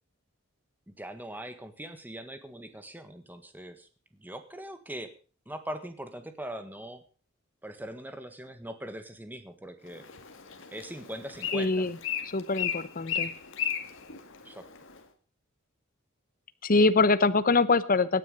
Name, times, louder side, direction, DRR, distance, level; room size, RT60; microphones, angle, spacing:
voice 1, 0.9-5.1 5.4-7.0 7.6-10.0 10.7-11.9 14.4-14.7, right 1 dB, 10° right, 9 dB, 1.6 m, -41 dB
Bird, 9.9-15.0, left 8 dB, 65° left, 2.0 m, -36 dB
voice 2, 11.5-12.0 12.3-13.3 16.6-18.2, left 3 dB, 45° left, 14 dB, 0.9 m, -24 dB
17.5 x 9.8 x 5.4 m, 0.38 s
head